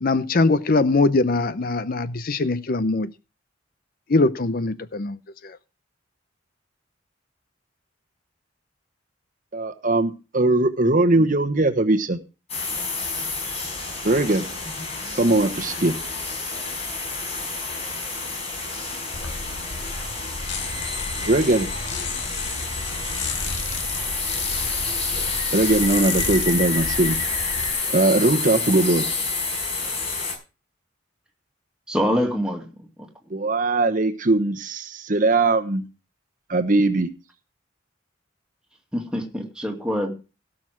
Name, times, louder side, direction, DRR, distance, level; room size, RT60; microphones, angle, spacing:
voice 1, 0.0-3.1 4.1-5.6, left 3 dB, 50° left, 0.6 m, -22 dB
voice 2, 9.5-12.2 14.0-14.4 15.2-16.0 21.3-21.7 25.5-27.2 27.9-29.1 33.3-35.8 36.5-37.1, right 2 dB, 45° right, 1.1 m, -20 dB
sound 1, 12.5-30.3, left 3 dB, 35° left, 5.3 m, -29 dB
sound 2, 19.1-27.7, left 3 dB, 65° left, 2.1 m, -33 dB
voice 3, 31.9-33.1 38.9-40.1, equal, 5° right, 2.5 m, -25 dB
17.0 x 6.4 x 6.1 m
head